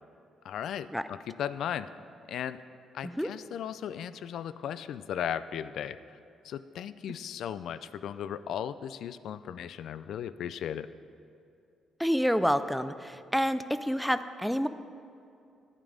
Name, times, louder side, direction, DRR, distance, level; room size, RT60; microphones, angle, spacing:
voice 1, 0.4-1.9 2.3-2.6 2.9-6.0 6.4-10.9, left 9 dB, 70° left, 14 dB, 0.4 m, -36 dB
voice 2, 12.0-14.7, equal, ahead, 12 dB, 0.4 m, -28 dB
11.0 x 9.2 x 5.0 m, 2.6 s
cardioid pair, 115°, 0 cm